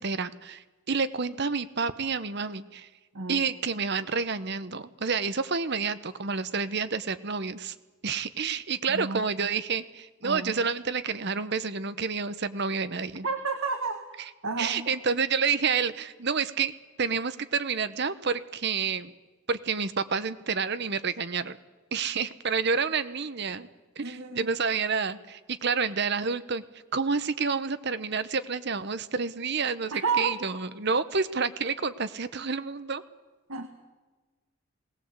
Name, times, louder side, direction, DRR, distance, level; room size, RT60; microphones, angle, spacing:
voice 1, 0.0-2.9 3.3-7.7 8.0-13.3 14.2-14.3 14.6-16.7 17.0-19.1 19.5-21.6 21.9-23.7 24.0-26.6 26.9-33.0, right 5 dB, 50° right, 13 dB, 0.9 m, -29 dB
voice 2, 8.9-9.5 10.2-10.6 13.2-14.0 14.4-14.9 24.0-24.5 29.9-30.3 33.5-33.7, right 4 dB, 70° right, 6 dB, 1.6 m, -31 dB
20.0 x 18.0 x 8.2 m, 1.3 s
head